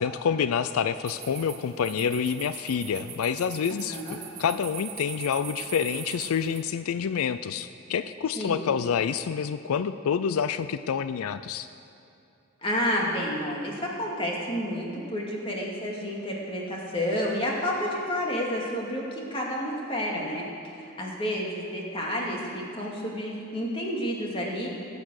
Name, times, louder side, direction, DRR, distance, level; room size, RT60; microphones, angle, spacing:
voice 1, 0.0-11.7, left 7 dB, 85° left, 12 dB, 0.4 m, -28 dB
sound 1, 1.1-6.6, right 10 dB, 85° right, 1.2 m, -41 dB
voice 2, 3.9-4.2 8.4-8.6 12.6-24.7, equal, 25° left, -3 dB, 2.3 m, -30 dB
19.5 x 8.5 x 6.4 m, 2.6 s
head